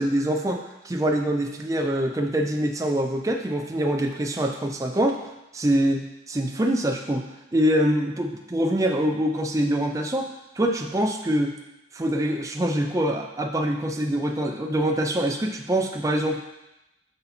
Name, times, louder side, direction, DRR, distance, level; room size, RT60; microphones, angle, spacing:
voice 1, 0.0-5.2 5.5-7.3 7.5-11.6 11.9-16.4, right 1 dB, 15° right, 3 dB, 0.4 m, -24 dB
6.8 x 4.0 x 4.3 m, 0.91 s
head